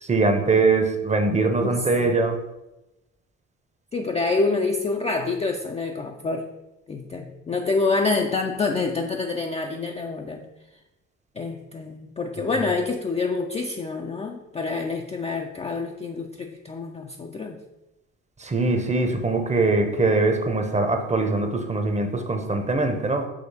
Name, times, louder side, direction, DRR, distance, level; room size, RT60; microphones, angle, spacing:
voice 1, 0.0-2.4 18.4-23.3, right 3 dB, 20° right, 5 dB, 0.6 m, -22 dB
voice 2, 1.6-2.1 3.9-6.5 6.9-10.4 11.4-17.6, left 3 dB, 20° left, 2 dB, 0.3 m, -27 dB
4.9 x 3.1 x 2.7 m, 0.96 s
hypercardioid pair, 50°, 39 cm